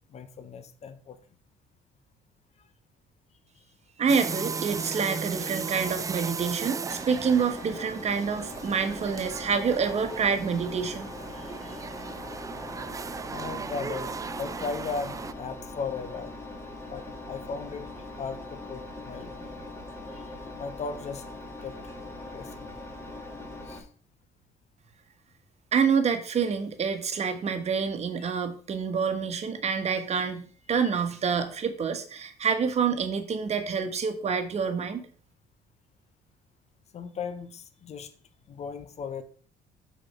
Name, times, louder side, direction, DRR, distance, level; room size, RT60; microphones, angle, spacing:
voice 1, 0.1-1.2 11.3-12.1 13.3-16.3 16.9-19.5 20.1-20.3 20.6-21.2 21.6-21.8 22.3-22.7 23.6-23.9 30.8-30.9 36.9-38.1 38.5-39.2, left 5 dB, 40° left, 10 dB, 1.0 m, -37 dB
voice 2, 4.0-11.1 25.7-35.0, right 6 dB, 40° right, 7 dB, 1.3 m, -27 dB
sound 1, 4.1-15.3, right 5 dB, 20° right, 0.3 m, -36 dB
Engine, 6.9-23.8, left 2 dB, 15° left, 2.1 m, -41 dB
6.3 x 4.3 x 5.6 m, 0.43 s
cardioid pair, 110°, 17 cm